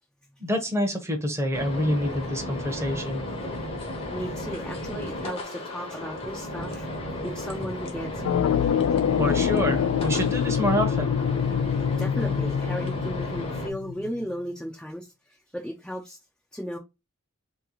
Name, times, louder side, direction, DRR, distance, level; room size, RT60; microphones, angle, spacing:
voice 1, 0.4-3.3 9.2-11.2, equal, 15° right, 1.0 m, -27 dB
sound 1, 1.5-13.7, left 1 dB, 30° left, 1.0 m, -34 dB
voice 2, 4.1-6.9 7.2-8.1 12.0-15.1 15.5-16.2 16.5-16.8, equal, 5° left, 0.7 m, -35 dB
sound 2, 8.2-14.1, left 8 dB, 70° left, 0.3 m, -25 dB
3.5 x 3.1 x 3.9 m
head